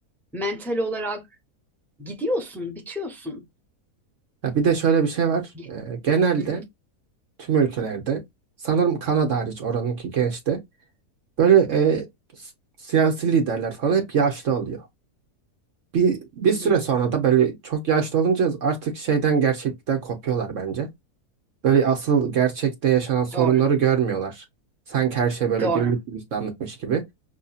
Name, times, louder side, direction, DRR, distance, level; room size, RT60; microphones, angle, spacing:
voice 1, 0.3-1.2 2.0-3.4 5.5-5.7 6.4-6.6 16.5-16.8 23.3-23.7 25.6-25.9, equal, ahead, 0.7 m, -29 dB
voice 2, 4.4-6.6 7.4-8.2 8.6-10.6 11.4-12.1 12.4-12.5 12.8-14.9 15.9-20.9 21.6-24.4 24.9-27.0, right 7 dB, 60° right, 1.2 m, -22 dB
5.7 x 2.7 x 2.3 m
omnidirectional pair, 1.6 m